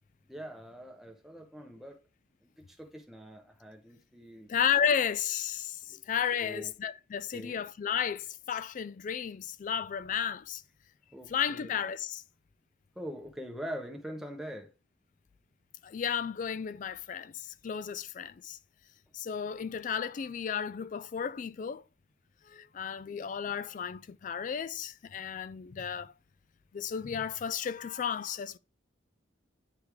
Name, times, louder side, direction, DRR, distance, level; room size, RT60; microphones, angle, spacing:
voice 1, 0.3-2.0 2.4-4.5 5.9-6.0 6.4-6.7 7.3-7.6 11.1-11.8 12.9-14.7 23.1-23.2, equal, ahead, 1.0 m, -43 dB
voice 2, 4.5-10.6 11.3-12.2 15.8-18.6 19.1-21.8 22.5-26.1 26.7-28.6, left 8 dB, 40° left, 0.3 m, -33 dB
9.5 x 3.3 x 3.5 m
head